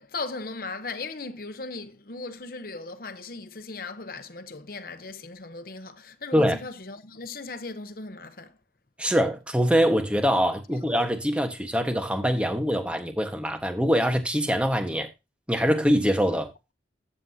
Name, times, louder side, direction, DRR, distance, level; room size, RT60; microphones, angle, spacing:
voice 1, 0.0-8.5, left 3 dB, 55° left, 1.0 m, -37 dB
voice 2, 9.0-15.1 15.5-16.5, equal, 5° right, 1.4 m, -23 dB
14.0 x 7.6 x 2.8 m
head